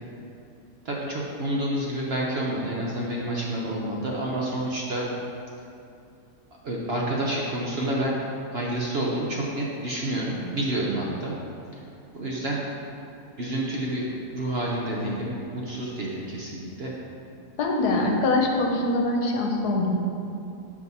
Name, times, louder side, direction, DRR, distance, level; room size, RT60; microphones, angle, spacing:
voice 1, 0.8-5.1 6.6-8.2 8.5-11.3 12.1-12.6 13.4-14.1 14.3-16.9, right 1 dB, 55° right, -3 dB, 0.8 m, -29 dB
voice 2, 17.6-20.0, left 2 dB, 80° left, 1 dB, 1.3 m, -23 dB
6.9 x 4.8 x 4.0 m, 2.6 s
omnidirectional pair, 1.6 m